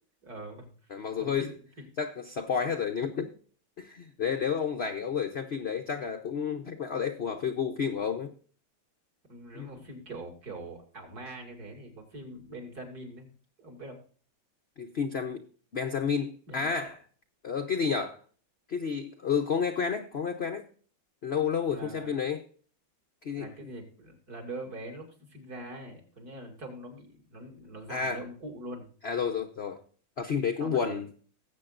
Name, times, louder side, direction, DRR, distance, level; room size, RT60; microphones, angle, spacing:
voice 1, 0.2-1.6 9.3-13.3 13.6-14.0 16.5-16.7 21.7-22.1 23.4-28.9 30.6-31.0, right 1 dB, 50° right, 2.9 m, -43 dB
voice 2, 0.9-1.5 2.0-3.3 3.8-8.3 9.5-9.7 14.8-15.4 15.7-17.0 17.4-18.2 18.7-20.6 21.2-22.4 23.2-23.5 27.9-28.2 29.0-29.8 30.2-31.0, left 6 dB, 60° left, 0.6 m, -30 dB
19.0 x 7.8 x 2.5 m
omnidirectional pair, 2.1 m